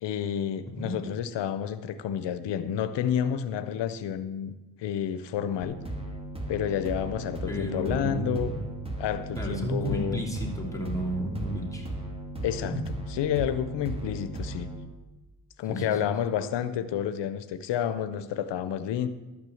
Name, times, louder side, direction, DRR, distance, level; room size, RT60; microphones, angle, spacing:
voice 1, 0.0-4.5 4.8-5.8 6.5-8.5 9.0-10.2 12.4-14.7 15.6-19.1, left 9 dB, 85° left, 12 dB, 0.7 m, -30 dB
sound 1, 5.6-14.9, right 1 dB, 15° right, 2.1 m, -37 dB
voice 2, 7.5-8.6 9.3-11.9 12.6-12.8 15.7-16.0, equal, 10° left, -2 dB, 2.9 m, -32 dB
12.0 x 6.1 x 7.7 m, 1.1 s
cardioid pair, 70°, 42 cm